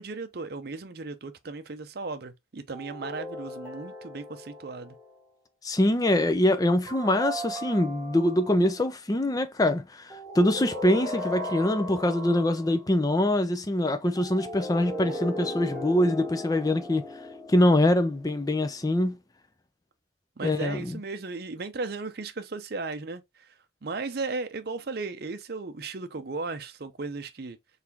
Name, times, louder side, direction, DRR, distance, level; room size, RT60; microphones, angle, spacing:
voice 1, 0.0-4.9 20.4-23.5 23.8-27.6, right 3 dB, 55° right, 0.6 m, -36 dB
sound 1, 2.7-5.2 6.9-8.7 10.1-12.8 14.2-18.7, equal, 10° right, 1.7 m, -37 dB
voice 2, 5.6-17.0 17.5-19.2 20.4-21.0, left 1 dB, 20° left, 0.5 m, -24 dB
4.1 x 3.3 x 2.8 m
head